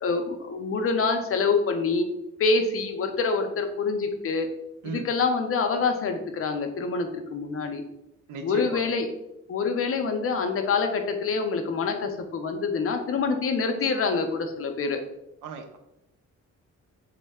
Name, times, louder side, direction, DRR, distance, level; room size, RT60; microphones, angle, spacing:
voice 1, 0.0-2.1 2.4-4.5 4.8-7.8 8.4-9.1 9.5-15.0, left 4 dB, 45° left, 6 dB, 0.5 m, -26 dB
voice 2, 8.3-9.0 15.4-15.8, right 5 dB, 90° right, 6 dB, 0.5 m, -37 dB
3.1 x 2.1 x 3.4 m, 0.86 s
cardioid pair, 105°, 30 cm